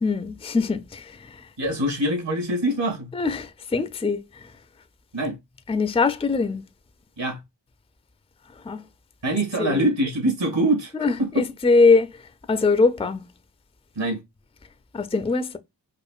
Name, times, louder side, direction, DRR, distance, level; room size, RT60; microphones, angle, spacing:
voice 1, 0.0-1.5 3.1-4.5 5.7-6.6 8.6-8.8 9.6-9.9 11.0-12.2 12.5-13.2 14.9-15.6, left 4 dB, 15° left, 0.4 m, -22 dB
voice 2, 1.6-3.1 5.1-5.4 7.2-7.4 9.2-10.9 11.2-11.3 14.0-14.2, right 1 dB, 75° right, 2.1 m, -24 dB
4.9 x 2.5 x 2.3 m
wide cardioid pair, 75°, 43 cm